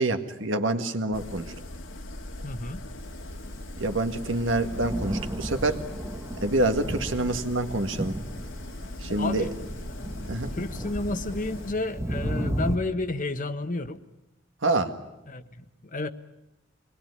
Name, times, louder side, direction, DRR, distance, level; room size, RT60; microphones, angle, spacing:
voice 1, 0.0-1.5 3.8-5.8 6.4-8.2 9.0-9.5 10.3-10.5 14.6-14.9, right 2 dB, 75° right, 6 dB, 1.9 m, -26 dB
sound 1, 1.1-11.7, left 1 dB, 75° left, 1.9 m, -39 dB
voice 2, 2.4-2.8 9.2-9.5 10.5-14.0 15.3-16.1, left 2 dB, 45° left, 10 dB, 1.2 m, -31 dB
Thunder, 3.2-12.8, right 1 dB, 15° right, 1.0 m, -35 dB
25.0 x 21.0 x 9.6 m, 0.96 s
head